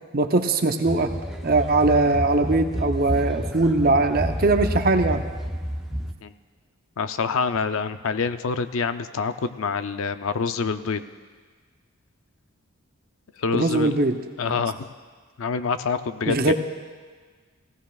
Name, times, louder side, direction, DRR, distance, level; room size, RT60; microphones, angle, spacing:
voice 1, 0.1-1.1 1.4-5.2 13.5-14.2 16.3-16.5, right 2 dB, 40° right, 6 dB, 0.7 m, -21 dB
sound 1, 0.8-6.1, equal, ahead, 0.5 m, -30 dB
voice 2, 7.0-11.0 13.4-13.9 14.4-14.9 15.4-16.5, left 5 dB, 65° left, 10 dB, 0.5 m, -26 dB
17.0 x 16.0 x 2.4 m, 1.5 s
head